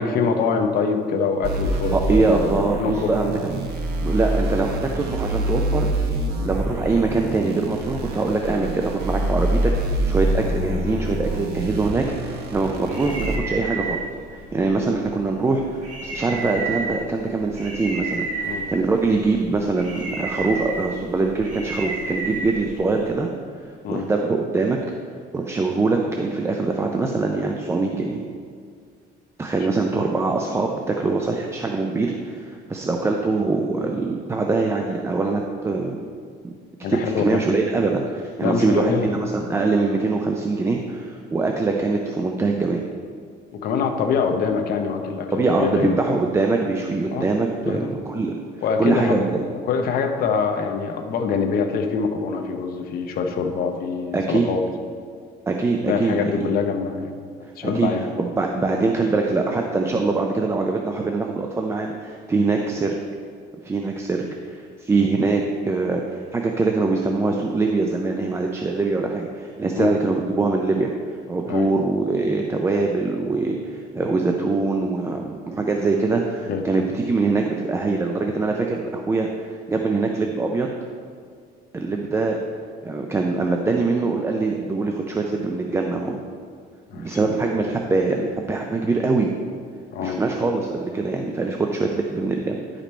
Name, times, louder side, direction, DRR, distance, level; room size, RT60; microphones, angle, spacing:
voice 1, 0.0-2.5 2.8-3.2 18.4-18.7 23.8-24.1 36.8-37.4 38.4-39.1 43.5-45.9 47.1-47.3 47.6-47.9 48.6-49.2 49.6-54.6 55.9-57.2 57.6-58.0 69.7-69.9 71.5-71.7 76.5-76.6 86.9-87.4 89.9-90.2, left 5 dB, 55° left, 4 dB, 0.8 m, -24 dB
sound 1, 1.4-13.4, right 1 dB, 60° right, 0.9 m, -26 dB
voice 2, 1.9-3.5 4.0-5.9 6.4-14.0 14.3-23.3 23.9-24.8 25.3-28.2 29.4-36.1 36.9-42.8 45.3-48.3 48.8-49.4 54.1-54.5 55.5-56.5 57.6-57.9 58.2-63.0 63.6-70.9 71.3-80.8 81.7-82.4 82.8-86.2 86.9-89.3 90.0-92.8, right 3 dB, 15° right, 2 dB, 0.4 m, -23 dB
sound 2, 12.5-23.1, right 3 dB, 40° right, 2.1 m, -32 dB
10.5 x 5.2 x 4.3 m, 2.1 s
cardioid pair, 150°, 18 cm